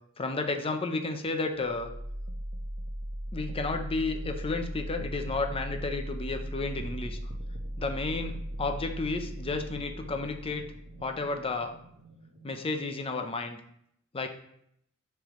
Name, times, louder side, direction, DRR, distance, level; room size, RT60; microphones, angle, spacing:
voice 1, 0.2-1.9 3.3-7.2 7.8-10.7 11.0-11.7 12.4-13.6 14.1-14.3, left 3 dB, 25° left, 6 dB, 0.6 m, -32 dB
sound 1, 1.6-13.5, equal, 55° right, 0.8 m, -38 dB
10.0 x 3.4 x 3.1 m, 0.72 s
head